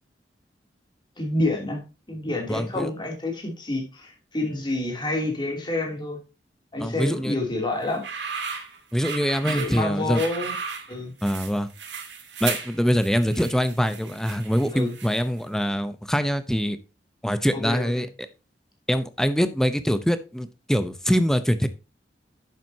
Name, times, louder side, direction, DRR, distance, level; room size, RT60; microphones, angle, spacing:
voice 1, 1.2-1.8 2.1-6.2 6.7-8.0 9.4-10.5 10.9-11.1 14.7-14.9 17.5-18.1, left 2 dB, 25° left, 1 dB, 2.9 m, -28 dB
voice 2, 2.5-2.9 6.8-7.4 8.9-10.2 11.2-11.7 12.4-16.8 17.2-18.1 18.9-21.7, equal, 5° left, 11 dB, 0.7 m, -24 dB
sound 1, 7.8-15.4, right 6 dB, 80° right, 2.2 m, -35 dB
10.0 x 7.6 x 2.8 m, 0.29 s
head